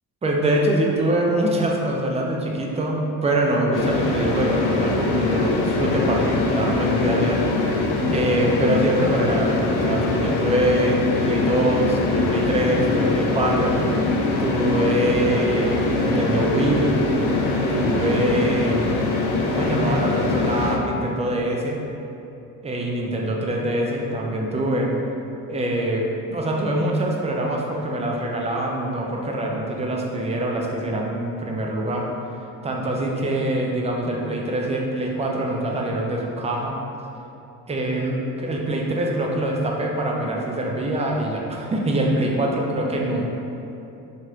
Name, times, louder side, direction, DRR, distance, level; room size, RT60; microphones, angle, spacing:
voice 1, 0.2-7.8 8.1-13.8 14.4-17.0 17.7-18.9 19.4-21.8 22.6-24.9 25.5-26.0 26.3-32.1 32.6-36.8 37.7-43.2, right 1 dB, 15° right, -1 dB, 0.4 m, -24 dB
sound 1, 3.7-20.8, left 3 dB, 65° left, 0.5 m, -22 dB
2.9 x 2.5 x 2.9 m, 2.8 s
hypercardioid pair, 45°, 44 cm